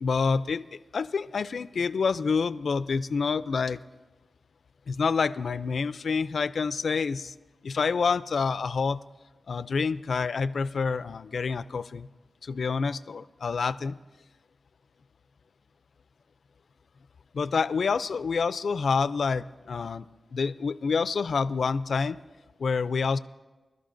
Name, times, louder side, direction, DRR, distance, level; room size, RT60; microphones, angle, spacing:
voice 1, 0.0-3.8 4.9-7.3 7.6-9.0 9.5-12.1 12.4-14.0 17.3-20.1 20.3-22.2 22.6-23.2, left 5 dB, 70° left, 15 dB, 0.3 m, -27 dB
26.0 x 12.5 x 2.6 m, 1.2 s
cardioid pair, 70°, 0 cm